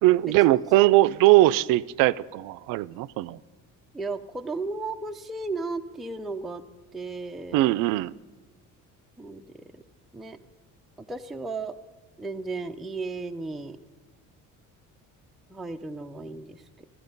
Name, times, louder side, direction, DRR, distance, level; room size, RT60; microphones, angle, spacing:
voice 1, 0.0-3.4 7.5-8.1, right 17 dB, 85° right, 18 dB, 0.5 m, -20 dB
voice 2, 3.9-6.7 6.9-7.6 9.2-9.8 10.1-10.4 11.0-11.8 12.2-13.8 15.5-16.9, right 3 dB, ahead, 5 dB, 0.4 m, -35 dB
14.5 x 13.5 x 5.3 m, 1.3 s
cardioid pair, 155°, 32 cm